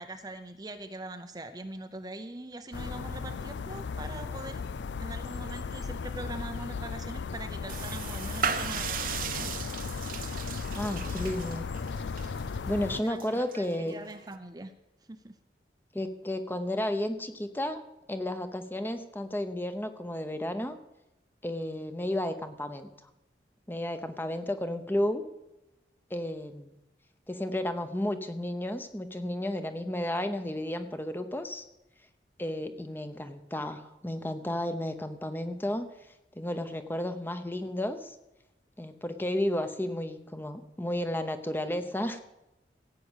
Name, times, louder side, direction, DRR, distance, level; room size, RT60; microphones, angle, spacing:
voice 1, 0.0-4.6 5.0-9.1 13.0-14.7 15.1-15.4, right 2 dB, 20° right, 8 dB, 0.6 m, -42 dB
sound 1, 2.7-13.0, left 5 dB, 90° left, 0.4 m, -36 dB
sound 2, 7.7-14.3, right 6 dB, 50° right, 0.9 m, -37 dB
voice 2, 10.8-11.7 12.7-13.9 15.9-17.8 18.1-20.8 21.4-22.9 23.7-25.2 26.1-26.7 27.3-31.6 32.4-35.9 36.4-38.2 38.8-42.2, left 1 dB, 10° left, 8 dB, 0.9 m, -32 dB
16.0 x 8.5 x 6.4 m, 0.93 s
head